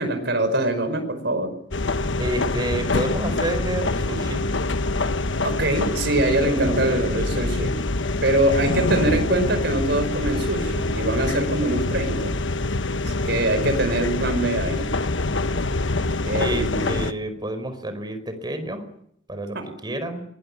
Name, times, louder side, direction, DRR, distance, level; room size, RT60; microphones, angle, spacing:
voice 1, 0.0-1.6 5.4-7.8 8.2-12.4 13.1-14.9 16.2-16.9 19.5-19.6, right 1 dB, 60° right, 7 dB, 5.1 m, -23 dB
sound 1, 1.7-17.1, left 2 dB, 70° left, 1.3 m, -25 dB
voice 2, 2.2-4.4 6.4-7.2 16.3-18.8 19.3-20.2, right 1 dB, 20° right, 9 dB, 4.9 m, -29 dB
24.5 x 21.0 x 9.9 m, 0.71 s
head